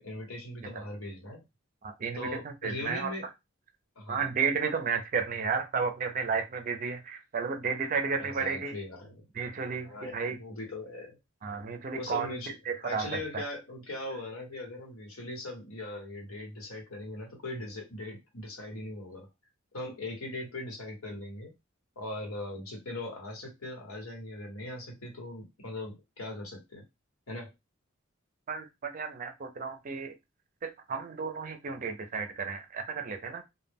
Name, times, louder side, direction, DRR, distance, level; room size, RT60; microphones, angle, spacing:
voice 1, 0.0-1.4 2.1-3.3 4.0-4.3 8.3-9.3 9.8-11.2 11.9-12.5 12.8-19.3 19.7-21.5 22.0-26.8 27.3-27.5, left 2 dB, 90° left, 0 dB, 1.1 m, -40 dB
voice 2, 1.8-3.1 4.1-8.7 9.3-10.4 11.4-12.3 12.7-13.5 28.5-30.1 30.6-33.4, right 5 dB, 40° right, 7 dB, 0.4 m, -33 dB
2.2 x 2.1 x 3.4 m, 0.21 s
head